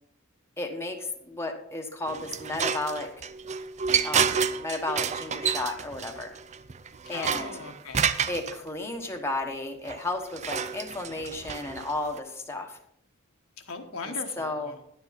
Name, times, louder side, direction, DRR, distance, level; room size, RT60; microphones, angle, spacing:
voice 1, 0.6-3.1 4.0-6.3 7.1-7.6 8.3-12.8 14.0-14.8, left 2 dB, 10° left, 2 dB, 1.1 m, -33 dB
sound 1, 2.1-8.5 9.9-12.2, right 7 dB, 30° right, 0.4 m, -29 dB
voice 2, 7.1-8.3 13.7-14.7, left 3 dB, 70° left, 4 dB, 1.3 m, -39 dB
11.0 x 9.7 x 4.1 m, 0.72 s
head